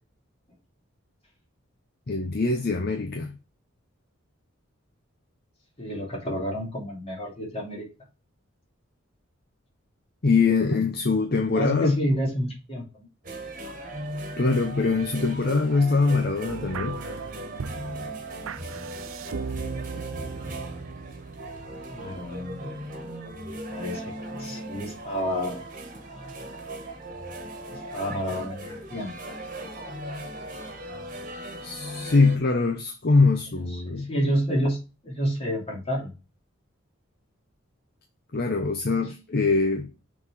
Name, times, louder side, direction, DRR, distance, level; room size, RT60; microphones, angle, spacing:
voice 1, 2.1-3.3 10.2-12.0 14.4-17.0 31.6-34.1 38.3-39.9, left 3 dB, 50° left, 0.7 m, -23 dB
voice 2, 5.8-7.9 11.5-13.1 21.9-22.6 23.7-25.6 27.7-29.1 33.7-34.8 35.0-36.1, equal, 30° left, 2.6 m, -29 dB
sound 1, 13.2-32.4, right 1 dB, 40° right, 1.5 m, -38 dB
sound 2, 16.5-22.4, right 5 dB, 85° right, 0.5 m, -38 dB
6.3 x 3.9 x 4.6 m
head